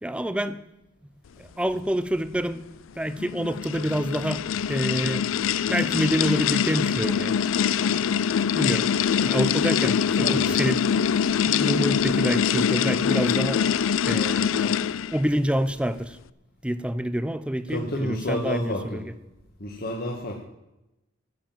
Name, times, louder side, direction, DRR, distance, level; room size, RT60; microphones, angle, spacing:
voice 1, 0.0-0.6 1.4-2.7 3.0-5.2 5.7-7.3 8.6-8.9 9.2-10.8 11.4-13.6 14.1-14.7 15.1-16.2 16.6-19.0, equal, 5° right, 13 dB, 0.6 m, -27 dB
sound 1, 3.1-15.2, left 7 dB, 80° left, 0.4 m, -24 dB
voice 2, 10.2-10.5 17.7-19.0 19.6-20.4, left 1 dB, 50° left, -1 dB, 1.6 m, -30 dB
13.5 x 7.5 x 7.5 m, 0.92 s
head